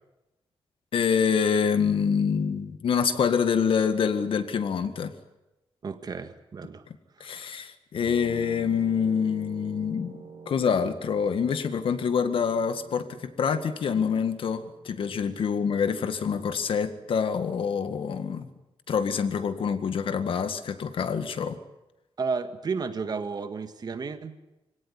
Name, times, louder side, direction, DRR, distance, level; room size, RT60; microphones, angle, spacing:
voice 1, 0.9-5.1 7.2-18.5 18.9-21.6, left 6 dB, 70° left, 10 dB, 1.9 m, -26 dB
voice 2, 5.8-6.8 7.2-7.3 22.2-24.4, right 5 dB, 45° right, 9 dB, 1.7 m, -32 dB
sound 1, 8.0-18.2, right 5 dB, 65° right, 5.2 m, -47 dB
25.0 x 17.5 x 9.9 m, 0.98 s
wide cardioid pair, 125°, 10 cm